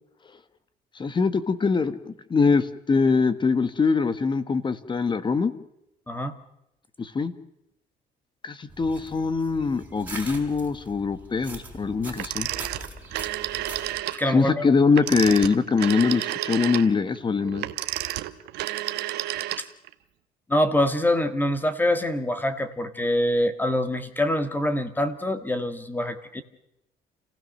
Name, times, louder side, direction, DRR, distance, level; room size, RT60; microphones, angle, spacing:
voice 1, 1.0-5.5 7.0-7.3 8.4-12.5 14.3-17.7, left 4 dB, 30° left, 13 dB, 1.4 m, -23 dB
sound 1, 8.7-14.0, right 2 dB, 10° right, 4.1 m, -41 dB
Telephone, 12.2-14.2 14.9-19.9, right 15 dB, 85° right, 1.1 m, -31 dB
voice 2, 14.2-14.6 19.6-19.7 20.5-26.4, left 1 dB, 10° left, 10 dB, 1.6 m, -25 dB
28.0 x 16.0 x 6.5 m, 0.82 s
cardioid pair, 110°, 17 cm